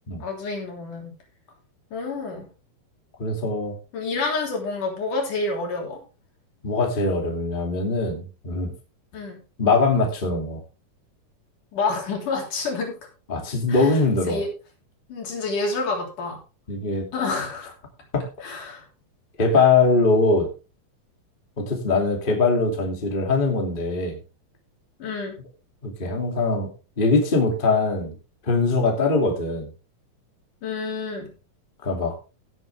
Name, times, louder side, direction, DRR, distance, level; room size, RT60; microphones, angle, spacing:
voice 1, 0.2-1.1 1.9-2.5 3.9-6.0 9.1-9.4 11.7-13.0 13.7-14.0 14.3-14.5 15.1-16.4 17.1-17.7 18.4-18.9 25.0-25.4 30.6-31.3, left 3 dB, 80° left, 1 dB, 4.9 m, -28 dB
voice 2, 3.2-3.8 6.6-8.7 9.6-10.6 13.3-14.4 16.7-17.1 18.1-18.3 19.4-20.5 21.6-24.2 25.8-26.7 27.0-28.2 28.4-29.7 31.8-32.2, left 3 dB, 15° left, 2 dB, 2.3 m, -22 dB
17.0 x 7.7 x 3.4 m, 0.31 s
omnidirectional pair, 3.6 m